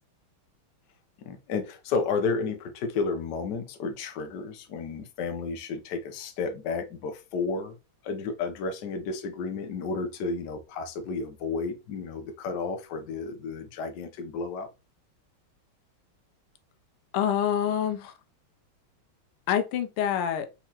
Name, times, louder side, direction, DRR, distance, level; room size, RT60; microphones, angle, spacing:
voice 1, 1.2-7.8 8.0-14.7, left 4 dB, 65° left, 1.2 m, -32 dB
voice 2, 17.1-18.1 19.5-20.5, left 9 dB, 90° left, 1.6 m, -26 dB
4.3 x 3.6 x 2.9 m
omnidirectional pair, 2.3 m